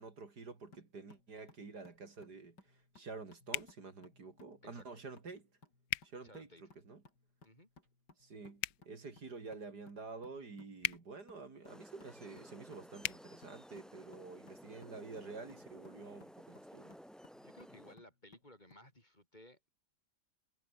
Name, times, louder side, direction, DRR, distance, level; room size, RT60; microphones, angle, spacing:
voice 1, 0.0-2.6 3.0-5.4 6.1-7.0 8.2-17.0, right 4 dB, 60° right, 3.5 m, -49 dB
sound 1, 0.7-18.9, left 3 dB, 65° left, 5.5 m, -65 dB
sound 2, 3.5-3.7 5.9-6.1 8.6-8.8 10.8-11.0 13.0-13.2, left 14 dB, 90° left, 1.5 m, -36 dB
voice 2, 6.2-6.6 7.4-7.7 17.4-19.7, left 1 dB, 25° left, 4.5 m, -59 dB
sound 3, 11.6-18.0, equal, ahead, 0.7 m, -55 dB
omnidirectional pair, 2.0 m